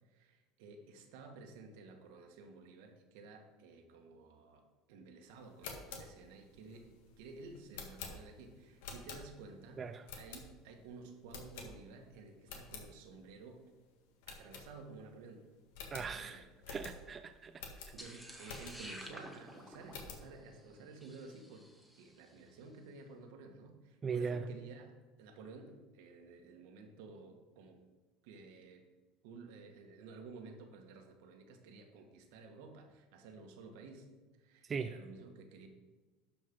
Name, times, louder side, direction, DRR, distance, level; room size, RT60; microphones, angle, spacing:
voice 1, 0.1-4.6 4.9-6.9 7.2-9.8 10.1-13.7 14.3-15.4 15.9-16.5 17.9-21.7 22.0-24.9 25.2-27.8 28.2-28.9 29.2-34.1 34.4-35.7, right 4 dB, 80° right, 4 dB, 1.7 m, -53 dB
sound 1, 5.4-9.6 10.0-10.8 11.3-12.1 12.4-12.9 13.3-13.4 13.7-13.8 14.2-15.1 15.4-15.5 15.7-19.0 19.5-20.3, left 5 dB, 90° left, 1.8 m, -49 dB
voice 2, 15.9-17.5 24.0-24.4 34.7-34.9, right 5 dB, 25° right, 8 dB, 0.5 m, -39 dB
sound 2, 18.0-22.3, equal, ahead, 1.3 m, -52 dB
12.0 x 5.3 x 5.5 m, 1.3 s
supercardioid pair, 135°, 0 cm